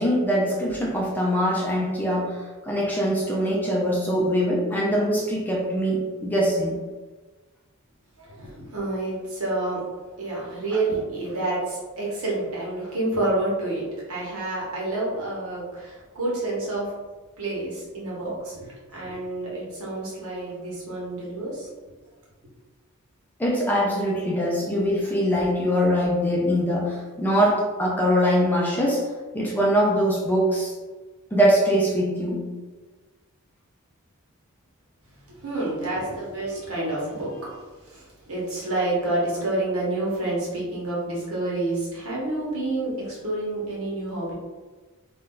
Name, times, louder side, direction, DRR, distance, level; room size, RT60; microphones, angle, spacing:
voice 1, 0.0-2.4 2.6-6.8 23.4-29.0 29.3-30.7 31.3-32.4, equal, 10° left, -3 dB, 0.4 m, -22 dB
voice 2, 8.2-9.8 10.2-13.8 14.1-16.9 17.4-21.7 35.3-37.6 37.9-44.3, right 2 dB, 75° right, -5 dB, 1.1 m, -28 dB
2.7 x 2.3 x 3.6 m, 1.3 s
head